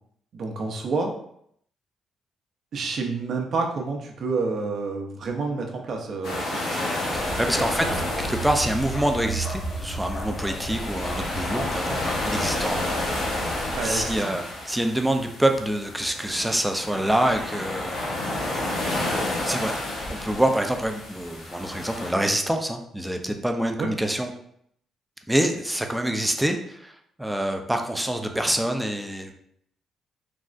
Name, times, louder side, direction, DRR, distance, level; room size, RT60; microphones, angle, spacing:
voice 1, 0.3-1.1 2.7-7.0 7.5-7.7 13.7-14.3 23.8-23.9, right 4 dB, 60° right, 2 dB, 0.6 m, -29 dB
sound 1, 6.2-22.1, left 1 dB, 80° left, 0.9 m, -31 dB
Bark, 7.1-14.2, right 1 dB, 45° left, 0.6 m, -34 dB
voice 2, 7.1-13.0 13.4-18.2 19.4-19.8 20.1-24.3 25.3-29.3, right 1 dB, 5° right, 4 dB, 0.4 m, -26 dB
3.4 x 2.0 x 2.4 m, 0.69 s
cardioid pair, 90°, 0 cm